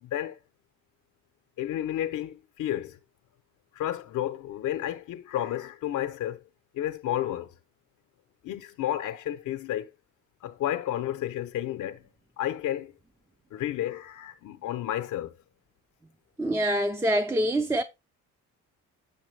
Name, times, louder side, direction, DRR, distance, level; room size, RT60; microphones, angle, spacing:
voice 1, 0.0-0.4 1.6-3.0 3.7-6.4 6.7-7.5 8.4-9.9 10.4-12.0 12.4-12.9 13.5-15.3, left 12 dB, 80° left, 0.8 m, -31 dB
voice 2, 16.4-17.8, right 1 dB, 10° right, 0.5 m, -25 dB
7.1 x 5.8 x 3.2 m
cardioid pair, 90°, 30 cm